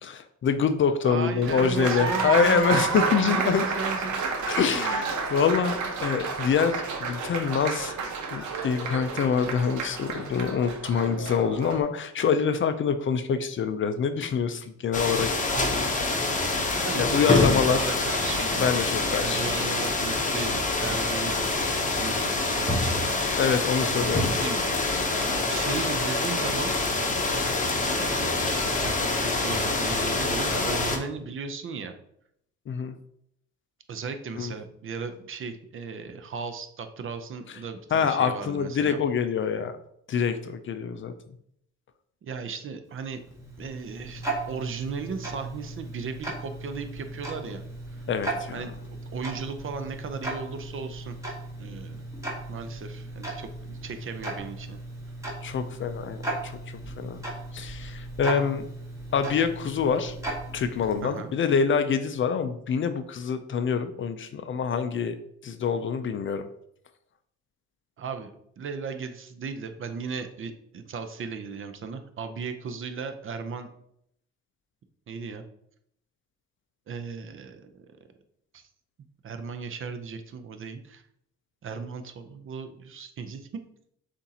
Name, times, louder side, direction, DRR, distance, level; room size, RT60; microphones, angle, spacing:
voice 1, 0.0-3.6 4.5-7.9 8.3-15.3 16.9-17.8 18.6-19.4 23.4-24.3 32.7-32.9 34.4-34.5 37.9-39.8 40.1-41.1 48.1-48.6 55.4-56.5 57.0-57.2 57.5-58.7 59.1-60.2 60.5-65.2 65.4-66.5, left 6 dB, 40° left, 9 dB, 0.4 m, -25 dB
voice 2, 1.0-4.2 15.5-15.9 16.7-18.8 19.2-23.4 23.8-24.6 25.4-26.7 27.8-31.9 33.9-39.0 42.2-43.2 43.6-47.6 48.5-51.2 51.6-52.1 52.5-54.8 61.0-61.3 68.0-73.7 75.1-75.4 76.9-77.9 78.5-78.6 79.2-81.0 81.6-83.5, right 5 dB, 45° right, 8 dB, 0.6 m, -36 dB
Applause, 1.4-11.8, right 4 dB, 75° right, 0.8 m, -30 dB
sound 1, 14.9-31.0, left 3 dB, 25° left, 0.8 m, -26 dB
Tick-tock, 42.9-61.3, right 2 dB, 10° right, 1.5 m, -37 dB
6.9 x 2.6 x 2.8 m, 0.72 s
cardioid pair, 90°, 30 cm